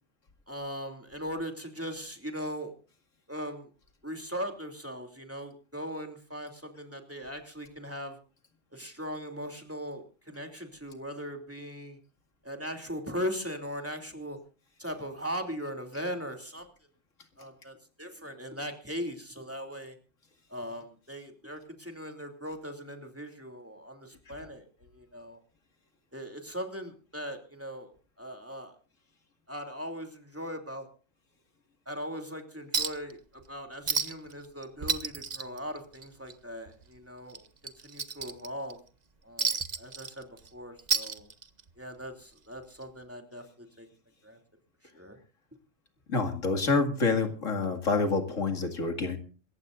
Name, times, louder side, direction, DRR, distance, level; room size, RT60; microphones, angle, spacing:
voice 1, 0.5-2.7 3.3-3.7 4.0-8.2 8.7-12.0 12.4-14.4 14.8-16.7 17.4-20.0 20.5-24.6 24.9-25.4 26.1-27.9 28.2-28.7 29.5-30.9 31.9-38.8 39.2-41.3 41.8-43.9 44.2-44.4 44.9-45.2, equal, 10° right, 4 dB, 2.8 m, -39 dB
Chink clink, 32.7-33.1 33.4-33.5 33.9-34.3 34.6-36.3 36.7-36.8 37.3-38.7 39.4-40.5 40.8-41.7 42.8-42.9, right 5 dB, 35° right, 0.9 m, -31 dB
voice 2, 46.1-49.2, left 3 dB, 90° left, 6 dB, 2.5 m, -27 dB
27.5 x 15.0 x 2.6 m, 0.35 s
omnidirectional pair, 1.3 m